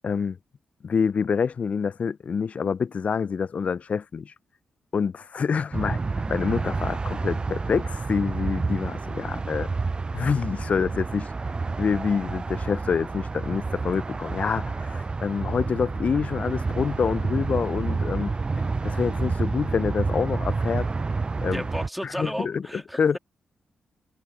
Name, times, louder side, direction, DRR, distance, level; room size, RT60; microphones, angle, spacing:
voice 1, 0.0-0.4 0.8-4.3 4.9-9.7 10.1-18.3 18.8-20.9 21.4-21.6 22.0-23.2, left 6 dB, 55° left, 0.4 m, -27 dB
sound 1, 5.7-21.9, right 4 dB, 35° right, 0.3 m, -29 dB
voice 2, 21.5-23.2, equal, ahead, 2.4 m, -33 dB
supercardioid pair, 45°, 3 cm